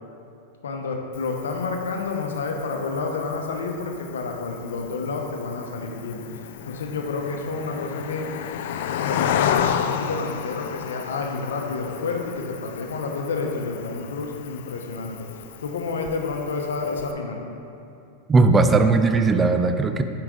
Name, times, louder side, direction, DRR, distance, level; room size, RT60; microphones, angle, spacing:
voice 1, 0.6-6.2 6.7-8.3 9.0-15.3 15.6-17.4, left 4 dB, 85° left, 2 dB, 0.9 m, -29 dB
Cricket, 1.1-17.1, left 8 dB, 70° left, 0.3 m, -32 dB
voice 2, 18.3-20.0, right 3 dB, 20° right, 8 dB, 0.4 m, -18 dB
8.8 x 4.9 x 3.7 m, 2.6 s
hypercardioid pair, 115°, 0 cm